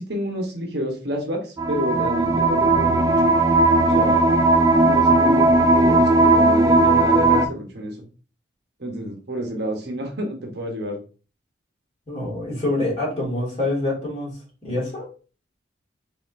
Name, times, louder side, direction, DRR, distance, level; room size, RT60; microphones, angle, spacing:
voice 1, 0.0-3.3 3.8-4.4 4.8-8.0 8.8-11.0, equal, 60° right, 2 dB, 1.0 m, -29 dB
sound 1, 1.6-7.5, right 2 dB, 20° right, 0.3 m, -17 dB
voice 2, 12.1-15.1, left 2 dB, 30° left, -3 dB, 2.0 m, -26 dB
4.0 x 3.9 x 2.6 m, 0.36 s
head